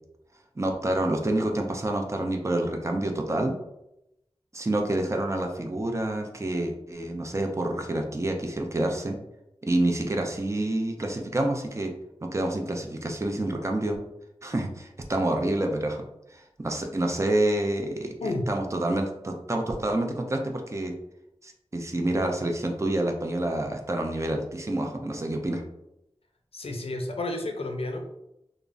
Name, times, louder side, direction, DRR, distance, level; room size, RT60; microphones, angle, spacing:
voice 1, 0.6-3.6 4.5-9.2 9.6-11.9 12.2-14.0 14.4-16.0 16.3-20.9 21.4-25.6, right 1 dB, 30° right, 3 dB, 0.4 m, -28 dB
voice 2, 26.5-28.2, left 2 dB, 80° left, 4 dB, 0.4 m, -31 dB
3.5 x 2.0 x 2.5 m, 0.85 s
wide cardioid pair, 65°, 10 cm